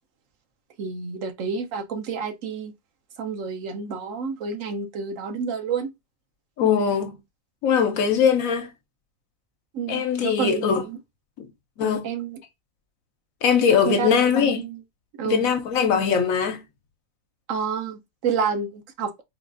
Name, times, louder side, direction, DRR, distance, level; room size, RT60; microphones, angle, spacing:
voice 1, 0.8-2.7 3.2-5.9 9.7-11.0 11.8-12.4 13.9-14.8 15.2-15.5 17.5-19.2, right 6 dB, 70° right, 1.0 m, -29 dB
voice 2, 6.6-7.2 7.6-8.7 9.9-10.8 11.4-11.5 11.8-12.1 13.4-14.7 15.2-16.6, left 7 dB, 75° left, 1.1 m, -21 dB
3.9 x 2.3 x 2.5 m
omnidirectional pair, 1.5 m